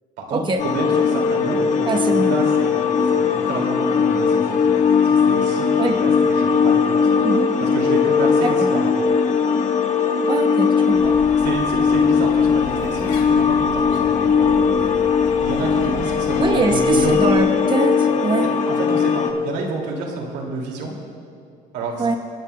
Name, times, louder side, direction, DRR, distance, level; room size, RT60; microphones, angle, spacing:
voice 1, 0.2-7.2 7.6-8.9 11.4-14.8 15.3-17.3 18.7-20.9 21.7-22.1, right 3 dB, 90° right, 0 dB, 2.3 m, -30 dB
sound 1, 0.6-19.3, left 6 dB, 45° left, 1.2 m, -19 dB
voice 2, 1.9-2.3 5.8-6.0 7.2-7.5 8.4-8.7 10.3-11.1 16.4-18.5 22.0-22.2, right 3 dB, 30° right, 5 dB, 1.0 m, -22 dB
sound 2, 10.9-17.4, left 6 dB, 70° left, 2.9 m, -36 dB
29.0 x 9.8 x 2.2 m, 2.5 s
cardioid pair, 110°, 17 cm